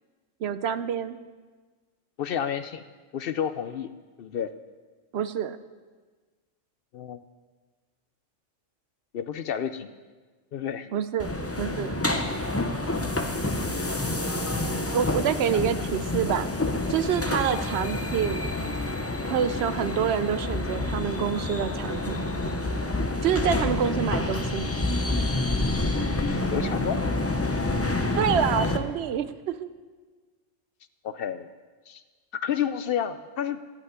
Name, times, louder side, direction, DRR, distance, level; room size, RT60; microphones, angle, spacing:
voice 1, 0.4-1.2 5.1-5.6 10.9-12.0 14.9-16.5 16.9-18.5 19.2-22.2 23.2-24.7 28.2-29.7, right 8 dB, 65° right, 13 dB, 0.8 m, -27 dB
voice 2, 2.2-2.8 3.1-3.9 4.2-4.5 6.9-7.2 9.1-9.9 10.5-10.9 15.5-15.6 17.5-17.7 26.5-27.0 31.0-31.5 31.9-32.0 32.3-33.6, left 9 dB, 60° left, 12 dB, 0.6 m, -30 dB
sound 1, 11.2-28.8, left 2 dB, 15° left, 0.6 m, -28 dB
15.0 x 5.6 x 9.4 m, 1.4 s
omnidirectional pair, 1.3 m